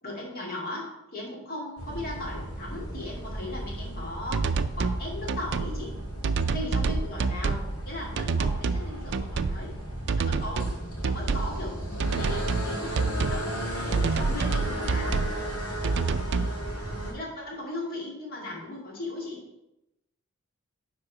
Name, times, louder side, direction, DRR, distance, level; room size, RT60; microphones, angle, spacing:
voice 1, 0.0-5.9 6.5-9.7 10.2-15.2 16.2-16.5 16.9-19.4, left 1 dB, 45° left, -3 dB, 2.4 m, -38 dB
sound 1, 1.8-17.1, right 1 dB, 85° left, 2.0 m, -35 dB
sound 2, 4.3-5.0 5.3-5.7 6.2-7.7 8.2-8.8 9.1-9.6 10.1-10.8 11.0-11.5 12.0-12.7 12.9-13.4 13.9-15.3 15.8-16.5, right 4 dB, 55° right, 0.4 m, -27 dB
10.0 x 3.8 x 4.8 m, 0.89 s
head